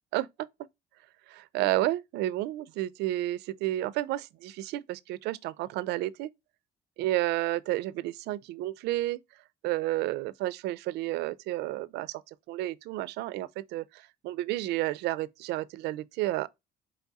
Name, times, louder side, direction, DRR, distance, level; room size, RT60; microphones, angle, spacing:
voice 1, 1.3-6.3 7.0-9.2 9.6-12.2 12.5-16.5, right 16 dB, 85° right, 0.4 m, -31 dB
4.2 x 4.0 x 2.3 m
cardioid pair, 110°, 17 cm